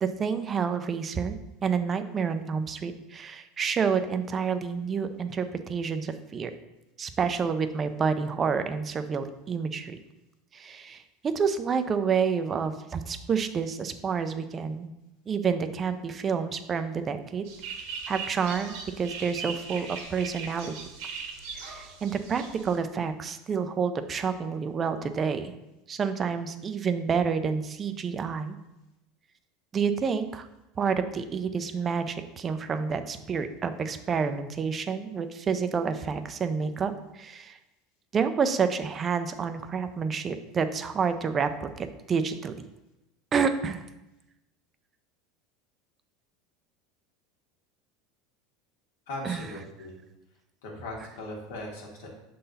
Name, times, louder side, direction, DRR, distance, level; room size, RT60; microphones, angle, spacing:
voice 1, 0.0-6.5 7.0-10.0 10.5-14.9 15.3-17.4 18.1-20.7 21.5-25.5 25.9-28.6 29.7-30.5 30.8-37.6 38.1-42.6 43.3-43.8 49.2-49.5 51.0-51.1, right 6 dB, 25° right, 10 dB, 0.4 m, -29 dB
sound 1, 17.5-22.8, right 5 dB, 65° right, 1.3 m, -39 dB
voice 2, 49.1-50.0 50.6-52.1, left 1 dB, 85° left, -2 dB, 1.8 m, -39 dB
6.6 x 3.9 x 4.1 m, 0.95 s
supercardioid pair, 140°, 0 cm